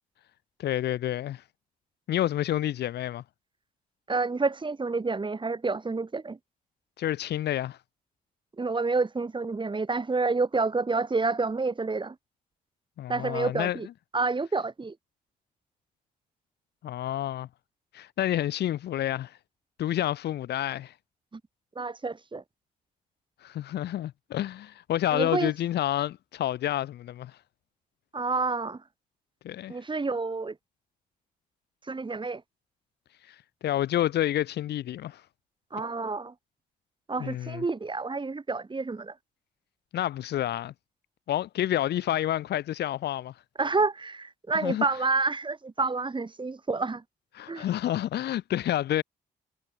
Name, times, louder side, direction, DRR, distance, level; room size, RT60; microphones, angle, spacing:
voice 1, 0.6-1.4 2.1-3.2 7.0-7.8 13.0-13.8 16.8-17.5 17.9-19.4 19.8-20.9 23.4-27.4 29.4-29.7 33.3-33.4 33.6-35.2 37.2-37.6 39.9-40.7 41.3-43.3 44.5-44.8 47.3-49.0, left 12 dB, 75° left, 2.6 m, -29 dB
voice 2, 4.1-6.4 8.6-12.2 13.1-13.9 14.1-14.9 21.8-22.4 25.1-25.5 28.1-28.8 29.7-30.5 31.9-32.4 35.7-36.3 37.1-39.1 43.6-47.0 47.5-47.7, right 3 dB, 30° right, 2.4 m, -29 dB
supercardioid pair, 60°, 17 cm